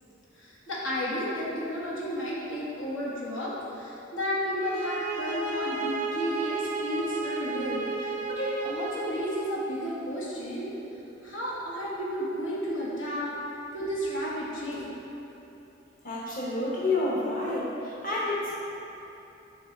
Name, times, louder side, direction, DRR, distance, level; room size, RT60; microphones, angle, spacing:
voice 1, 0.4-10.7 11.2-13.3 13.7-14.9, equal, 90° left, -6 dB, 1.4 m, -32 dB
sound 1, 4.6-9.6, right 3 dB, 40° right, 0.4 m, -33 dB
voice 2, 16.0-18.6, left 2 dB, 45° left, -7 dB, 1.0 m, -29 dB
9.2 x 3.2 x 3.9 m, 2.9 s
head